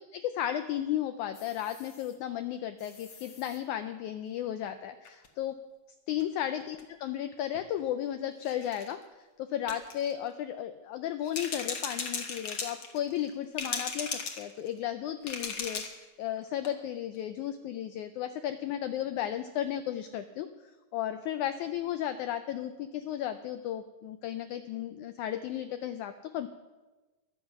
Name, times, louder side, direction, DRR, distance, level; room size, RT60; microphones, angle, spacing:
voice 1, 0.1-5.6 6.1-9.0 9.4-20.5 20.9-26.5, left 11 dB, 85° left, 9 dB, 1.7 m, -34 dB
sound 1, 1.3-2.1 2.8-3.6 5.0-5.3 6.2-6.3 6.6-6.8 7.5-7.7 8.4-8.9 9.7-10.1 11.2-13.3 13.6-14.8 15.2-16.0 16.4-16.5 16.6-16.7, left 5 dB, 70° left, 1.0 m, -38 dB
22.5 x 7.5 x 5.8 m, 1.2 s
omnidirectional pair, 4.1 m